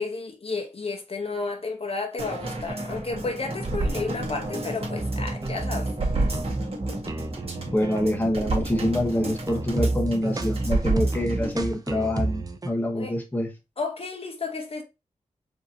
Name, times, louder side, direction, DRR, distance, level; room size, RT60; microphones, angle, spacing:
voice 1, 0.0-5.9 12.9-13.1 13.8-14.8, left 3 dB, 50° left, 0.9 m, -32 dB
sound 1, 2.2-11.6 12.0-12.1, right 2 dB, 50° right, 1.7 m, -31 dB
sound 2, 5.0-12.7, right 2 dB, 30° right, 0.5 m, -30 dB
voice 2, 7.7-13.5, left 1 dB, 15° left, 0.9 m, -26 dB
4.9 x 2.9 x 2.5 m
wide cardioid pair, 105°, 13 cm